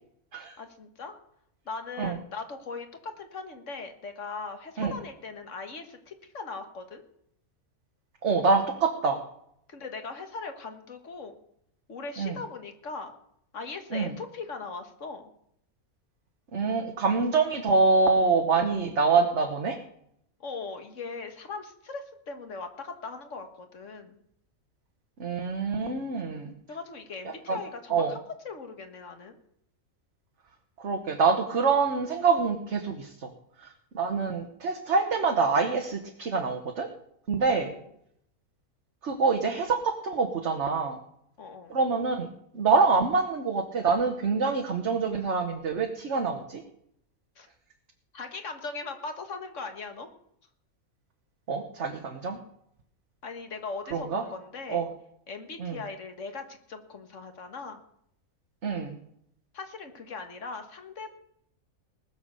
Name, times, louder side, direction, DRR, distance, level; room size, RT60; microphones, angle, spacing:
voice 1, 0.6-1.2 1.7-7.0 9.7-11.3 11.9-13.1 13.5-15.2 20.4-24.2 26.7-29.4 37.4-37.9 41.4-41.7 47.4-47.5 48.1-50.1 53.2-54.8 55.3-57.8 59.5-61.1, left 4 dB, 60° left, 7 dB, 1.9 m, -39 dB
voice 2, 8.2-9.2 12.2-12.4 13.9-14.1 16.5-19.8 25.2-26.5 27.5-27.6 27.9-28.1 30.8-33.3 33.6-33.7 33.9-36.9 37.3-37.7 39.0-41.0 41.7-42.3 42.5-46.6 51.5-52.4 53.9-54.2 54.7-54.9 55.6-55.8 58.6-59.0, right 4 dB, 55° right, 3 dB, 1.5 m, -25 dB
19.5 x 7.1 x 6.8 m, 0.72 s
omnidirectional pair, 1.5 m